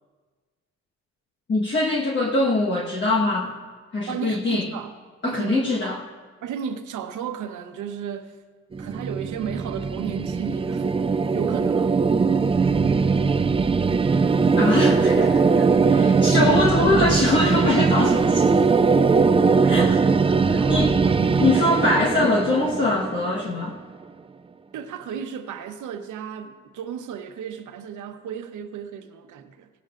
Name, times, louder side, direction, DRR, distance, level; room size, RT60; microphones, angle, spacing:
voice 1, 1.5-3.6 3.9-4.7 5.2-6.0 14.6-18.5 19.7-20.0 20.2-20.9 21.4-23.8, left 2 dB, 40° left, 1.4 m, -23 dB
voice 2, 4.1-4.9 5.2-6.0 6.4-8.4 8.8-10.9 11.3-12.0 19.6-21.5 24.7-29.7, right 8 dB, 80° right, 1.0 m, -34 dB
sound 1, 8.7-23.8, right 4 dB, 20° right, 0.4 m, -20 dB
17.5 x 13.0 x 2.5 m
cardioid pair, 90°, 30 cm